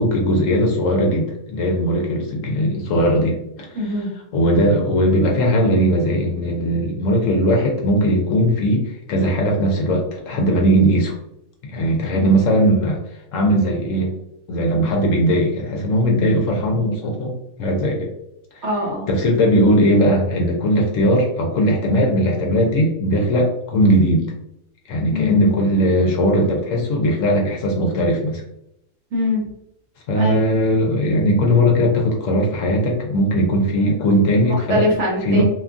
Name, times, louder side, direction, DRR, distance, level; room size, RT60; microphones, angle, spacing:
voice 1, 0.0-3.8 4.3-11.1 11.6-13.0 13.3-14.1 14.5-17.3 17.6-18.1 18.5-18.6 19.1-24.3 24.9-28.4 30.1-34.8 35.2-35.4, equal, 65° left, 1 dB, 0.9 m, -18 dB
voice 2, 3.7-4.1 12.1-12.2 18.6-19.1 25.1-25.4 29.1-29.5 30.1-30.4 34.7-35.4, left 1 dB, 60° right, -3 dB, 1.0 m, -22 dB
2.9 x 2.3 x 2.4 m, 0.80 s
omnidirectional pair, 1.5 m